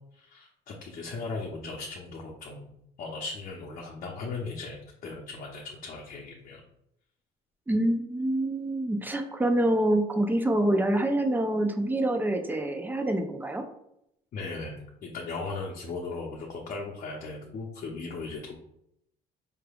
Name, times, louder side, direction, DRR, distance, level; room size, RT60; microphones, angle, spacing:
voice 1, 0.1-2.7 3.0-6.6 14.3-18.6, left 3 dB, 50° left, -2 dB, 0.7 m, -37 dB
voice 2, 7.7-13.6, right 1 dB, 10° right, 6 dB, 0.5 m, -26 dB
4.8 x 3.3 x 2.3 m, 0.77 s
cardioid pair, 110°, 17 cm